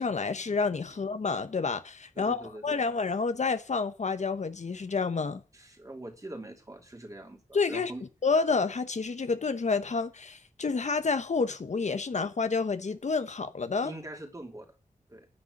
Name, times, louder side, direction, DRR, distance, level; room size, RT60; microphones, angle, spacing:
voice 1, 0.0-5.4 7.5-7.9 8.2-13.9, left 4 dB, 55° left, 1.0 m, -29 dB
voice 2, 2.2-2.8 5.5-8.0 13.8-14.7 15.1-15.3, right 1 dB, 25° right, 2.8 m, -43 dB
9.9 x 9.1 x 6.6 m
wide cardioid pair, 95°, 14 cm